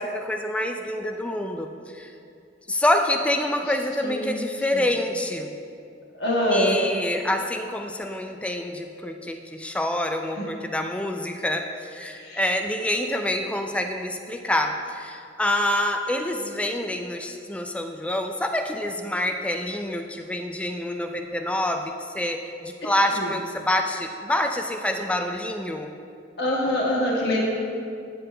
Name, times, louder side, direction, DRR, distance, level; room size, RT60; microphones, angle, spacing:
voice 1, 0.0-2.1 2.7-5.5 6.5-25.9, left 1 dB, 5° left, 5 dB, 0.3 m, -27 dB
voice 2, 4.0-4.5 4.7-4.9 6.1-6.8 10.4-10.5 12.1-12.4 23.1-23.3 26.4-27.4, left 1 dB, 60° left, -4 dB, 1.3 m, -24 dB
9.2 x 7.8 x 3.3 m, 2.4 s
head